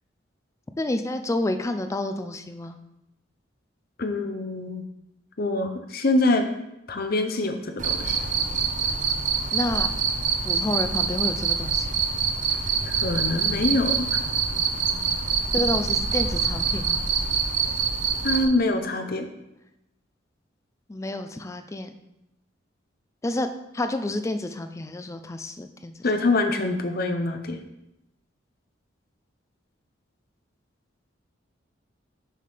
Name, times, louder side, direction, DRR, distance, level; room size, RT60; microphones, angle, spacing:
voice 1, 0.8-2.8 9.5-9.9 10.4-12.0 15.5-17.0 20.9-21.9 23.2-23.5 23.7-25.9, left 2 dB, 15° left, 8 dB, 0.3 m, -29 dB
voice 2, 4.0-4.8 5.4-6.5 6.9-8.2 12.9-14.2 18.2-19.3 26.0-27.6, left 2 dB, 50° left, 6 dB, 0.6 m, -25 dB
Cricket, 7.8-18.4, right 6 dB, 40° right, 0.6 m, -25 dB
6.4 x 5.7 x 3.4 m, 0.90 s
head